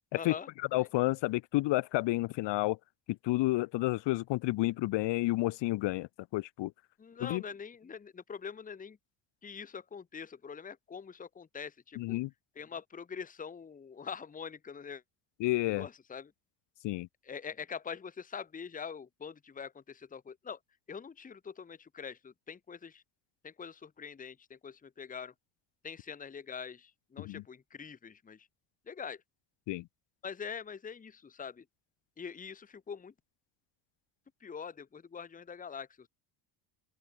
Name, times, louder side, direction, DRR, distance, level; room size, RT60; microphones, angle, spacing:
voice 1, 0.1-0.5 7.0-9.0 9.4-12.2 12.6-15.0 15.7-16.3 17.2-20.6 20.9-23.0 23.4-25.3 25.8-28.5 28.9-29.2 30.2-31.6 32.2-33.1 34.4-36.1, left 6 dB, 15° left, 1.1 m, -44 dB
voice 2, 0.7-2.8 3.1-6.7 7.2-7.4 12.0-12.3 15.4-15.9 16.8-17.1 27.2-27.4 29.7-29.9, left 19 dB, 65° left, 1.2 m, -30 dB
open air
cardioid pair, 120°, 47 cm